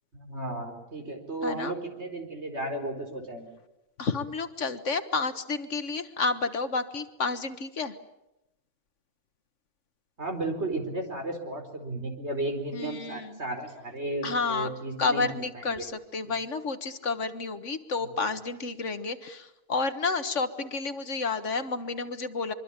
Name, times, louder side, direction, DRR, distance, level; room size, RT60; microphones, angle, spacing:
voice 1, 0.1-3.5 10.2-15.8 18.0-18.1, right 2 dB, 50° right, 4 dB, 4.8 m, -34 dB
voice 2, 1.4-1.7 4.0-7.9 12.7-13.4 14.2-14.7 15.0-22.5, left 4 dB, 60° left, 10 dB, 1.7 m, -30 dB
24.5 x 24.0 x 8.8 m, 0.91 s
omnidirectional pair, 1.4 m